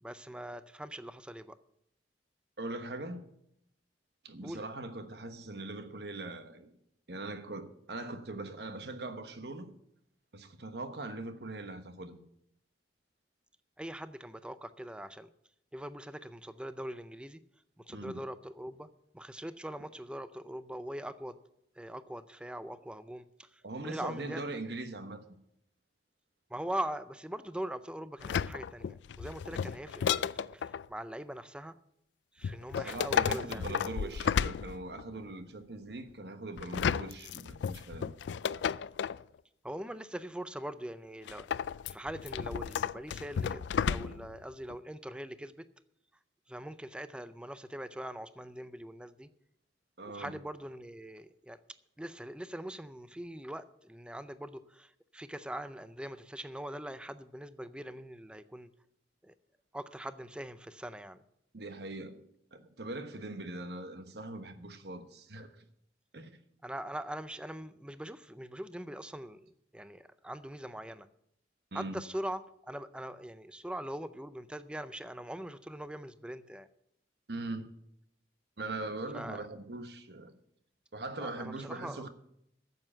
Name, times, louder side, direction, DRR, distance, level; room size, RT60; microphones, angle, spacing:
voice 1, 0.0-1.6 4.4-4.7 13.8-15.3 15.7-17.4 17.8-18.9 19.1-21.4 21.8-24.4 26.5-31.8 32.3-34.2 39.6-41.5 41.9-45.6 46.5-49.3 50.1-51.6 52.0-58.7 59.2-59.3 59.7-61.2 66.6-71.1 71.7-76.7 79.1-79.4 81.2-82.1, right 1 dB, 5° right, 0.4 m, -42 dB
voice 2, 2.6-3.2 4.2-6.7 7.1-9.7 10.3-12.2 17.9-18.2 23.6-25.2 29.5-29.6 32.7-38.1 50.0-50.4 61.5-62.2 62.5-65.6 66.1-66.3 71.7-72.0 77.3-77.7 78.6-80.3 80.9-82.1, right 2 dB, 65° right, 1.2 m, -41 dB
sound 1, 28.2-30.9 32.4-35.2 36.6-39.2 41.3-44.4 44.7-44.8, left 7 dB, 80° left, 0.3 m, -33 dB
9.3 x 7.7 x 8.7 m
head